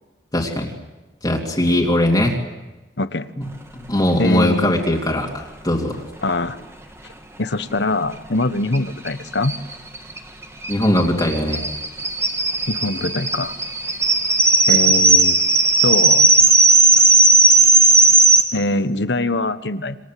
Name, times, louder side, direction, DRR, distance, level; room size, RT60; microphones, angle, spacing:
voice 1, 0.3-0.7 1.2-2.4 3.4-3.5 3.7-5.9 10.7-11.6, left 1 dB, 20° left, -2 dB, 2.8 m, -20 dB
voice 2, 3.0-3.3 4.2-4.8 6.2-6.6 7.4-9.5 12.7-13.5 14.7-15.4 15.8-16.3 18.5-20.0, left 2 dB, 65° left, 12 dB, 1.3 m, -23 dB
sound 1, 8.7-8.8 9.1-9.2 9.4-18.4, right 3 dB, 15° right, 2.0 m, -15 dB
27.5 x 26.5 x 7.8 m, 1.1 s
head